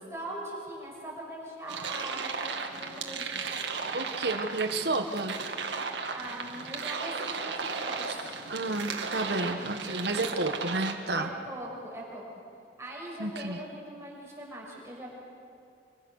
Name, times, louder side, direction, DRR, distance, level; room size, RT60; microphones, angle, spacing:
voice 1, 0.1-3.4 6.1-8.5 9.8-10.1 11.1-12.4 12.8-15.1, right 1 dB, 15° right, -4 dB, 6.5 m, -41 dB
sound 1, 1.7-10.9, right 4 dB, 85° right, 2.1 m, -35 dB
voice 2, 3.9-5.4 8.5-11.3 13.2-13.6, right 2 dB, 65° right, 5 dB, 1.5 m, -31 dB
27.0 x 24.5 x 6.6 m, 2.5 s
head